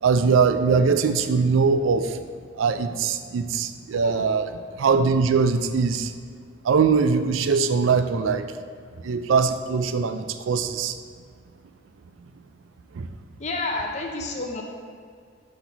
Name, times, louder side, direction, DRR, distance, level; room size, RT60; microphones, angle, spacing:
voice 1, 0.0-2.2 2.6-6.1 6.6-8.5 9.0-10.9 12.9-13.1, right 5 dB, 90° right, 9 dB, 0.4 m, -22 dB
voice 2, 3.9-4.3 13.4-14.6, left 2 dB, 35° left, 1 dB, 0.6 m, -30 dB
5.9 x 4.1 x 5.9 m, 2.1 s
head